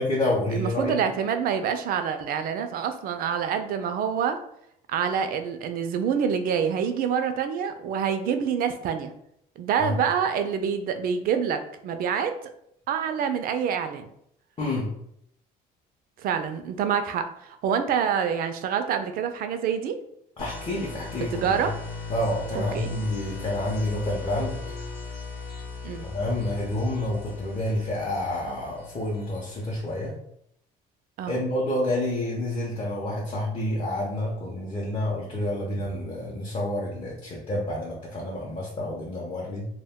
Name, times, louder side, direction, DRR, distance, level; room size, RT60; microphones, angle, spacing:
voice 1, 0.0-1.0 9.8-9.9 14.6-14.9 20.4-21.7 22.1-24.8 26.0-30.2 31.3-39.7, left 1 dB, 30° left, -4 dB, 0.6 m, -29 dB
voice 2, 0.5-4.4 4.9-9.1 9.6-12.3 12.9-14.1 16.2-20.0 21.3-21.8 22.5-22.9 25.8-26.0 31.2-31.4, right 7 dB, 60° right, 8 dB, 0.4 m, -26 dB
sound 1, 20.4-30.1, left 4 dB, 70° left, 0.8 m, -38 dB
2.2 x 2.2 x 3.5 m, 0.73 s
cardioid pair, 110°, 17 cm